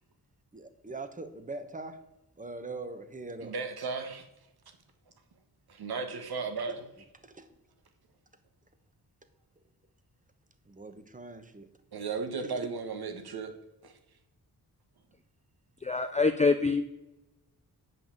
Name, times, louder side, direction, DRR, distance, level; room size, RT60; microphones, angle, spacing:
voice 1, 0.5-2.0 2.4-3.5 7.2-7.5 10.7-11.6 12.3-12.7, right 3 dB, 20° right, 9 dB, 1.0 m, -42 dB
voice 2, 3.4-4.2 5.7-6.9 11.9-13.5 13.8-13.9, right 4 dB, 70° right, 6 dB, 1.5 m, -35 dB
voice 3, 15.8-17.0, left 4 dB, 20° left, 8 dB, 0.4 m, -25 dB
7.7 x 5.6 x 7.7 m, 0.94 s
wide cardioid pair, 125°, 39 cm